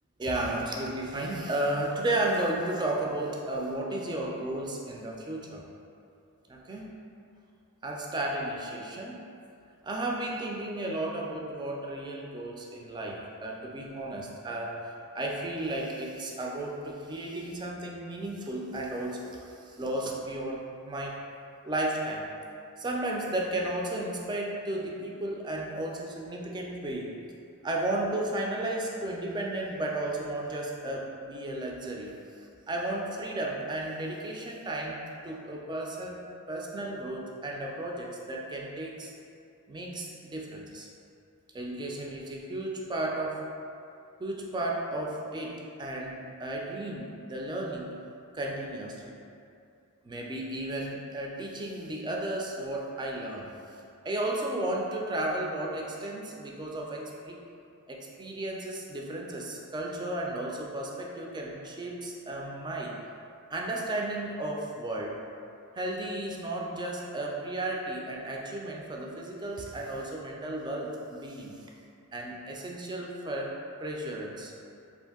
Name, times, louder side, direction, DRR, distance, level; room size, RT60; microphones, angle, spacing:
voice 1, 0.2-5.6 6.5-7.0 7.8-9.2 9.8-21.2 21.6-22.3 22.8-27.1 27.6-32.1 32.7-39.1 39.7-40.9 41.5-43.4 44.2-47.9 48.3-49.1 50.0-53.5 54.0-57.4 57.9-62.9 63.5-65.2 65.7-71.6 72.1-74.5, right 1 dB, 20° right, -1 dB, 0.3 m, -34 dB
2.6 x 2.5 x 3.6 m, 2.5 s
head